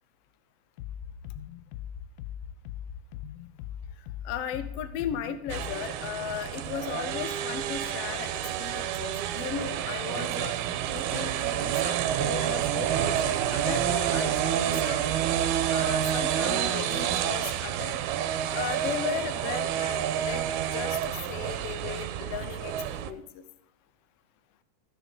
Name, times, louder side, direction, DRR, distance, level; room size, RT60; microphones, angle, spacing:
sound 1, 0.8-5.8, left 10 dB, 90° left, 1.5 m, -40 dB
voice 1, 4.2-10.6 10.9-15.2 15.7-18.0 18.5-23.4, left 9 dB, 70° left, 10 dB, 1.5 m, -36 dB
sound 2, 5.5-23.1, right 10 dB, 80° right, 2.0 m, -29 dB
sound 3, 11.9-20.8, right 5 dB, 60° right, 1.4 m, -44 dB
15.0 x 6.3 x 5.2 m, 0.81 s
omnidirectional pair, 3.6 m